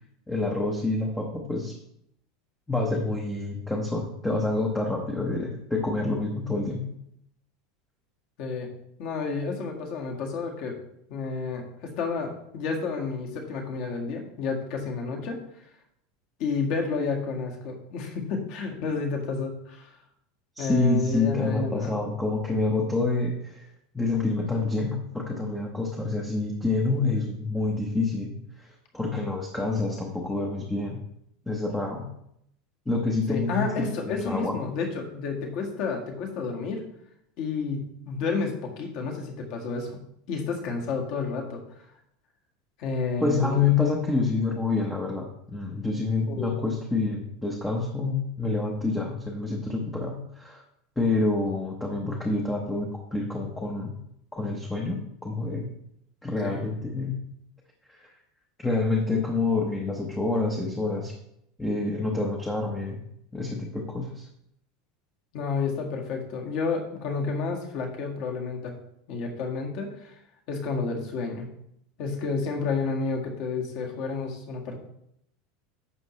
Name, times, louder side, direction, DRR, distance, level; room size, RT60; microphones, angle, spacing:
voice 1, 0.3-1.8 2.7-6.8 20.6-23.7 23.9-28.7 28.9-31.0 31.5-32.1 32.9-33.7 34.0-34.6 43.2-50.6 51.0-54.0 54.3-55.7 56.2-57.1 57.9-58.1 58.6-61.1 61.6-63.0 63.3-64.3, left 3 dB, 5° left, -1 dB, 0.9 m, -27 dB
voice 2, 9.0-10.8 11.1-15.4 16.4-19.9 20.6-21.9 33.3-36.8 37.4-40.0 40.3-41.6 42.8-43.6 46.3-46.5 56.4-56.7 65.3-68.7 69.1-70.1 70.5-71.5 72.0-74.8, left 4 dB, 45° left, 2 dB, 1.8 m, -30 dB
11.0 x 7.1 x 3.2 m, 0.74 s
supercardioid pair, 170°, 0 cm